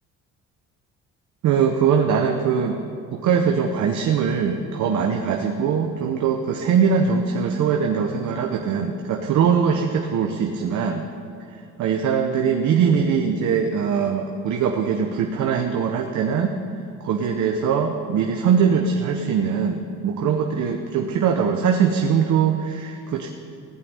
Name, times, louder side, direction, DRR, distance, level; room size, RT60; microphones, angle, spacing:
voice 1, 1.4-2.8 3.1-11.0 11.5-16.5 17.0-23.3, right 6 dB, 65° right, 3 dB, 1.0 m, -21 dB
15.5 x 5.3 x 9.6 m, 2.5 s
supercardioid pair, 70°, 32 cm